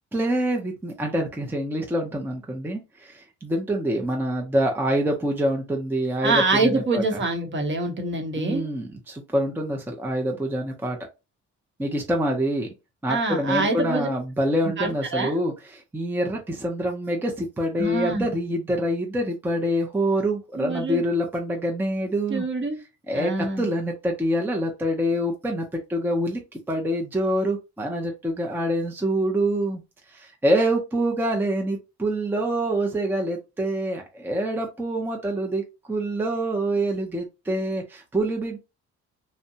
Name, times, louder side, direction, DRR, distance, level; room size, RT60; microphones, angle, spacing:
voice 1, 0.1-7.0 8.4-11.0 11.8-12.7 13.0-22.5 23.1-29.8 30.1-38.6, right 1 dB, 5° right, 0.5 m, -26 dB
voice 2, 6.2-8.6 13.1-14.1 14.8-15.4 17.8-18.3 20.6-21.0 22.3-22.8 23.1-23.7, right 3 dB, 40° right, 0.9 m, -25 dB
2.7 x 2.1 x 2.6 m
cardioid pair, 90°, 30 cm